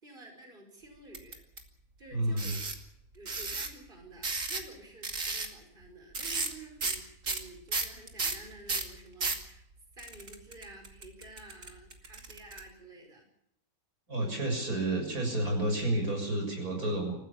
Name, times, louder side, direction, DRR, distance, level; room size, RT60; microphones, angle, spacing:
voice 1, 0.0-1.4 2.0-2.6 3.1-9.7 9.9-13.3 14.2-14.4, right 2 dB, 35° right, 3 dB, 5.6 m, -51 dB
sound 1, 1.1-1.6 2.4-2.8 3.3-3.7 4.2-4.7 5.0-5.5 6.1-6.5 6.8-7.0 7.2-9.4 10.0-12.6, right 3 dB, 60° right, 2.9 m, -33 dB
voice 2, 2.1-2.5 14.1-17.2, right 1 dB, 80° right, 3 dB, 7.2 m, -30 dB
28.0 x 15.5 x 7.2 m, 0.79 s
omnidirectional pair, 1.5 m